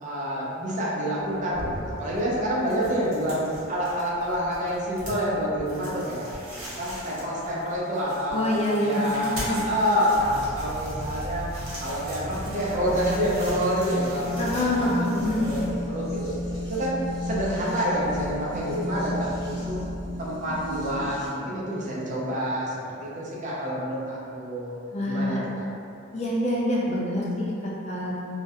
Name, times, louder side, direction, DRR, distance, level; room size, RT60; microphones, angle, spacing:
voice 1, 0.0-6.3 6.6-8.4 8.8-11.5 11.8-14.7 15.0-16.4 16.6-19.8 20.2-24.8 25.1-25.6, equal, 40° right, -6 dB, 0.4 m, -28 dB
sound 1, 1.2-16.3, equal, 75° right, 0.9 m, -41 dB
voice 2, 8.3-9.6 14.4-15.6 24.9-25.4 26.1-28.2, left 1 dB, 35° left, -5 dB, 0.3 m, -26 dB
sound 2, 10.1-21.3, left 1 dB, 60° left, 0.8 m, -33 dB
2.3 x 2.0 x 2.7 m, 2.6 s
head